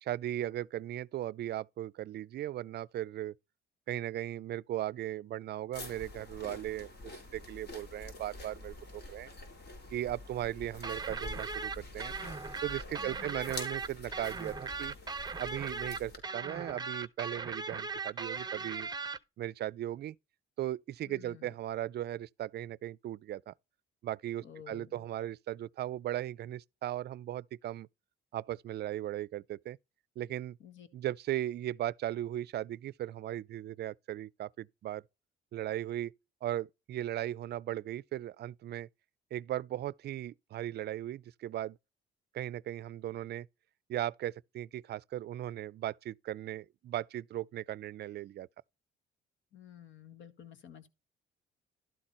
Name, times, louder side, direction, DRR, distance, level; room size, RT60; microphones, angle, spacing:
voice 1, 0.0-3.3 3.9-9.3 9.9-12.1 12.6-14.9 15.4-18.9 19.4-20.2 20.6-23.5 24.0-27.9 28.3-29.8 30.2-30.6 30.9-35.0 35.5-36.1 36.4-38.9 39.3-41.8 42.3-43.5 43.9-48.5, right 13 dB, 55° right, 0.4 m, -37 dB
sound 1, 5.7-16.2, left 2 dB, 55° left, 4.1 m, -47 dB
sound 2, 10.8-19.2, right 4 dB, 20° right, 0.7 m, -38 dB
voice 2, 13.0-13.3 21.1-21.5 24.4-25.1 30.6-30.9 49.5-50.9, left 9 dB, 75° left, 1.7 m, -52 dB
12.0 x 4.2 x 4.3 m
cardioid pair, 90°, 20 cm